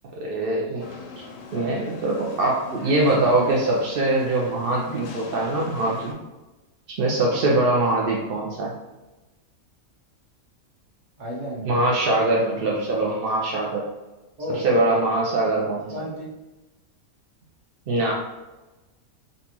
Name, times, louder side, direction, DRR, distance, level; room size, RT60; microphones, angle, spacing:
voice 1, 0.1-0.9 1.5-6.1 6.9-8.7 11.6-13.9 14.5-15.9 17.9-18.1, right 2 dB, 65° right, -3 dB, 0.5 m, -23 dB
sound 1, 0.8-6.1, left 3 dB, 70° left, 0.9 m, -40 dB
voice 2, 7.3-7.6 11.2-11.9 14.4-14.7 15.7-16.3, equal, 40° right, -5 dB, 1.0 m, -34 dB
3.9 x 2.3 x 2.8 m, 1.1 s
omnidirectional pair, 1.4 m